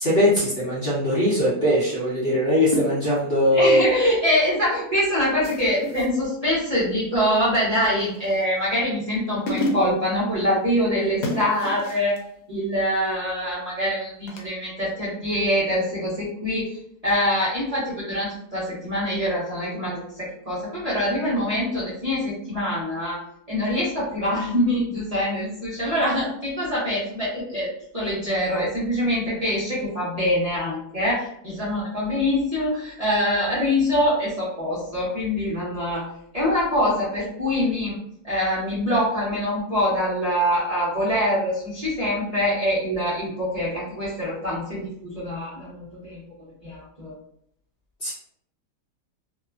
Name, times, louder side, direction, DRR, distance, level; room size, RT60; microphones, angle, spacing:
voice 1, 0.0-3.9 48.0-48.1, equal, 45° left, -8 dB, 0.8 m, -20 dB
sound 1, 2.7-3.3 5.4-6.2 8.0-8.6 9.2-9.3 9.5-10.1 11.2-12.2 14.3-14.5, left 1 dB, 80° left, 1.2 m, -30 dB
voice 2, 3.5-12.2 12.5-16.8 17.0-23.2 23.5-36.0 36.3-38.0 38.2-46.2 46.6-47.1, equal, 35° right, -10 dB, 0.7 m, -24 dB
2.8 x 2.1 x 2.4 m, 0.70 s
omnidirectional pair, 1.7 m